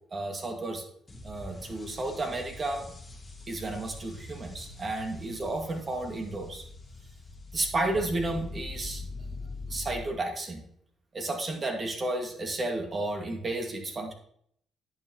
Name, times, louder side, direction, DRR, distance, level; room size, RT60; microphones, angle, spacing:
voice 1, 0.1-0.8 1.2-2.9 3.5-6.6 7.5-9.1 9.7-10.6 11.1-14.1, right 2 dB, 40° right, 2 dB, 2.2 m, -32 dB
sound 1, 1.1-10.0, left 2 dB, 20° left, 1.9 m, -43 dB
10.5 x 7.1 x 3.1 m, 0.66 s
supercardioid pair, 70°, 0 cm